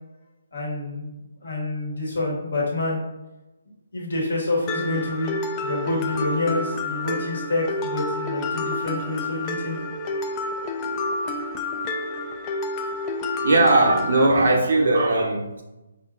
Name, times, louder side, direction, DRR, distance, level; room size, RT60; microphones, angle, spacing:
voice 1, 0.5-3.0 3.9-9.8, left 2 dB, 65° left, -4 dB, 1.5 m, -27 dB
Mallet percussion, 4.7-14.3, left 2 dB, 20° left, 0.3 m, -29 dB
voice 2, 13.4-15.6, right 2 dB, 60° right, 1 dB, 0.6 m, -19 dB
5.1 x 2.5 x 2.3 m, 0.98 s
figure-of-eight pair, 140°, 0 cm